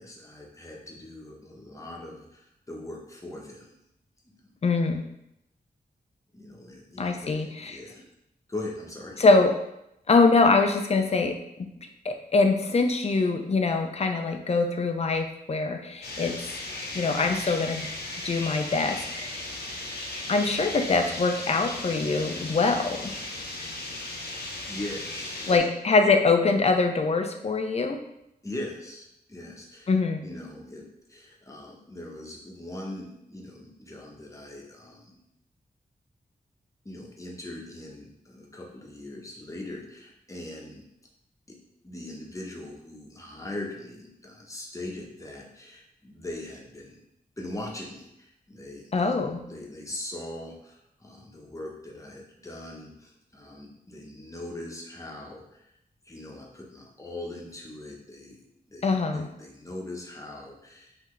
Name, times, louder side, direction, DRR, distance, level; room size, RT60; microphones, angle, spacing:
voice 1, 0.0-3.8 4.3-4.5 6.3-8.1 8.5-9.2 24.7-25.7 28.4-29.9 30.2-35.2 36.8-40.9 41.5-41.6 41.8-47.0 47.4-49.1 49.5-55.7 56.0-58.4 58.7-61.0, left 1 dB, 20° left, -1 dB, 1.0 m, -41 dB
voice 2, 4.6-5.1 7.0-7.8 9.2-9.5 10.1-16.5 16.9-17.9 18.2-19.5 20.3-23.1 25.5-28.0 29.9-30.2 48.9-49.4 58.8-59.3, left 3 dB, 40° left, 5 dB, 0.5 m, -24 dB
sound 1, 16.0-25.6, left 2 dB, 85° left, 0.8 m, -36 dB
5.6 x 2.8 x 3.2 m, 0.82 s
wide cardioid pair, 95°, 16 cm